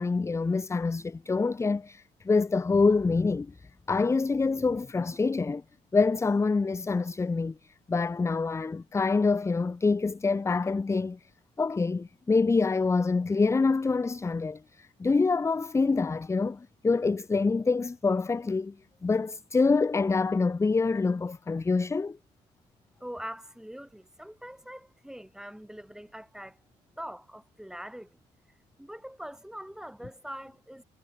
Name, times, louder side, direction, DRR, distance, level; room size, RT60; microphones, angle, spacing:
voice 1, 0.0-3.5 3.9-5.6 5.9-7.6 7.9-11.2 11.6-18.7 19.0-22.2, left 4 dB, 15° left, 0.4 m, -26 dB
voice 2, 23.0-26.6 27.0-28.2 28.8-30.8, equal, 5° right, 2.1 m, -43 dB
figure-of-eight pair, 45°, 21 cm